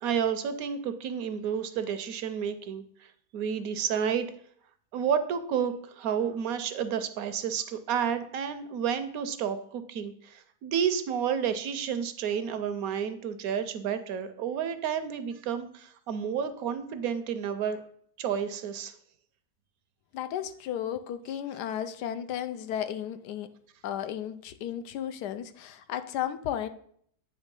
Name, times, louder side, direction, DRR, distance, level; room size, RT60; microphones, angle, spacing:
voice 1, 0.0-2.8 3.3-4.3 4.9-17.8 18.2-18.9, right 8 dB, 70° right, 11 dB, 0.9 m, -30 dB
voice 2, 20.1-23.5 23.8-26.7, left 10 dB, 85° left, 11 dB, 1.2 m, -34 dB
9.0 x 3.2 x 5.2 m, 0.63 s
omnidirectional pair, 1.7 m